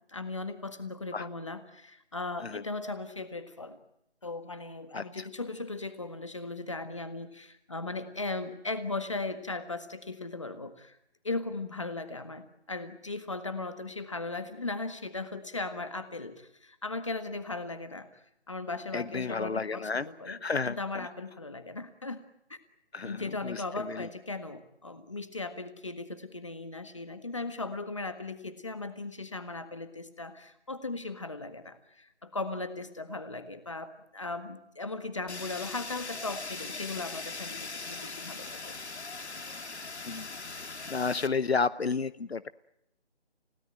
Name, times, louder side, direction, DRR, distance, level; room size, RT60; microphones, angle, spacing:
voice 1, 0.1-3.8 4.2-11.0 11.2-18.1 18.5-20.4 20.6-22.2 22.5-22.6 23.0-38.7, left 3 dB, 30° left, 10 dB, 1.6 m, -37 dB
voice 2, 4.9-5.2 18.9-21.1 22.9-24.1 40.1-40.3 40.9-42.5, left 4 dB, 70° left, 16 dB, 0.9 m, -32 dB
Fire, 35.3-41.3, left 3 dB, 85° left, 2.1 m, -40 dB
29.5 x 17.5 x 9.0 m, 0.81 s
figure-of-eight pair, 180°, 33 cm